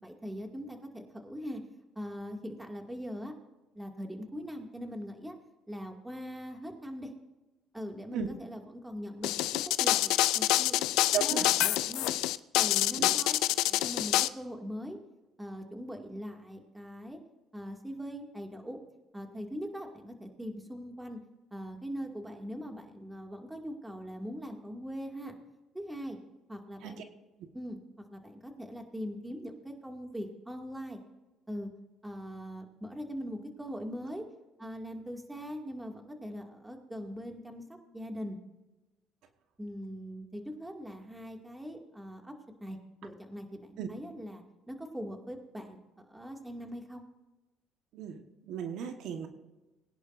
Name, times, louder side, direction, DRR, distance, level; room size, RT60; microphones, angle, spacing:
voice 1, 0.0-1.6 2.0-3.3 3.7-5.4 5.7-7.1 7.7-12.1 12.5-13.4 13.7-15.0 15.4-17.2 17.5-18.8 19.1-21.2 21.5-25.4 25.7-26.2 26.5-27.0 27.5-31.0 31.5-31.7 32.0-34.2 34.6-38.4 39.6-42.3 42.6-45.8 46.1-47.0, equal, 10° right, 3 dB, 2.3 m, -41 dB
sound 1, 9.2-14.3, left 15 dB, 80° left, 0.4 m, -26 dB
voice 2, 11.1-11.7 13.0-13.1 26.8-27.0 43.8-43.9 47.9-49.3, right 8 dB, 75° right, 6 dB, 1.4 m, -36 dB
21.5 x 10.5 x 2.6 m, 1.1 s
supercardioid pair, 85°, 0 cm